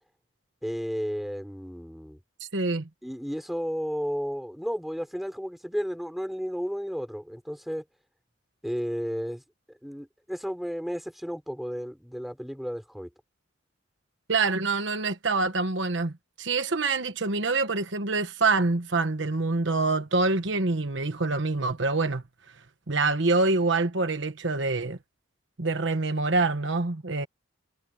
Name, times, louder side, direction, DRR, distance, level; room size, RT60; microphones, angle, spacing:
voice 1, 0.6-2.2 3.0-7.8 8.6-9.4 9.8-13.1, equal, ahead, 4.8 m, -33 dB
voice 2, 2.5-2.8 14.3-16.1 16.4-22.2 22.9-25.0 25.6-27.3, right 3 dB, 65° right, 1.2 m, -25 dB
head